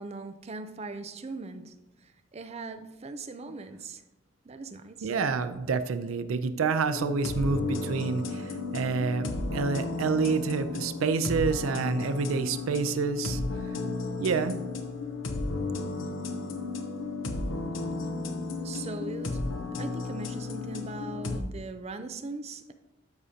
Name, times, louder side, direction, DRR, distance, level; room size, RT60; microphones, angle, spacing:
voice 1, 0.0-1.7 2.0-4.0 4.4-5.1 18.6-19.4 19.8-22.7, right 3 dB, 30° right, 9 dB, 0.5 m, -40 dB
voice 2, 5.0-13.4 14.2-14.6, right 5 dB, 90° right, 11 dB, 0.5 m, -28 dB
sound 1, 6.9-21.4, left 3 dB, 65° left, 0.8 m, -33 dB
13.0 x 5.0 x 2.8 m, 1.0 s
head